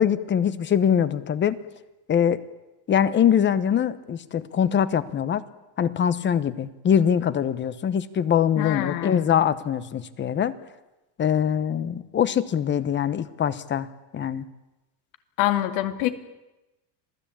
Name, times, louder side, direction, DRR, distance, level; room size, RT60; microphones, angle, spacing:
voice 1, 0.0-1.6 2.1-2.4 2.9-5.4 5.8-10.5 11.2-13.9 14.1-14.4, left 8 dB, 25° left, 15 dB, 0.9 m, -23 dB
voice 2, 8.6-9.3 15.4-16.1, left 14 dB, 80° left, 8 dB, 2.6 m, -25 dB
27.0 x 17.5 x 8.7 m, 1.0 s
cardioid pair, 165°, 47 cm